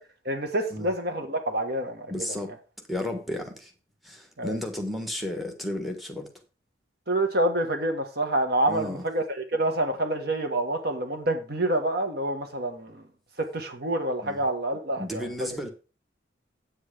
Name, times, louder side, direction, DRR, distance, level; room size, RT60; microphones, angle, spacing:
voice 1, 0.2-2.3 4.4-4.6 7.1-13.0 13.4-15.5, right 1 dB, 55° right, 1.5 m, -27 dB
voice 2, 2.1-2.5 2.9-3.7 4.0-6.3 8.6-9.0 14.2-14.4 15.0-15.7, left 1 dB, ahead, 1.5 m, -33 dB
8.5 x 7.8 x 5.0 m
head